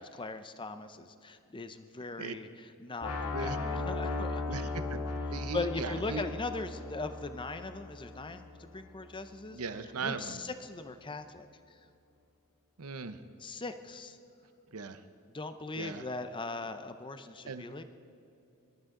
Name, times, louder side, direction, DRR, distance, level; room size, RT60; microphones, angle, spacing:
voice 1, 0.2-4.7 5.5-9.6 10.0-11.5 13.4-14.2 15.3-17.8, left 3 dB, 20° left, 9 dB, 0.6 m, -39 dB
sound 1, 3.0-8.9, left 3 dB, 85° left, 1.5 m, -37 dB
voice 2, 4.5-5.0 5.3-6.2 9.5-10.4 12.8-13.2 14.7-15.0 15.8-16.0 17.5-17.8, right 4 dB, 80° right, 10 dB, 0.8 m, -38 dB
24.0 x 12.5 x 3.8 m, 2.7 s
head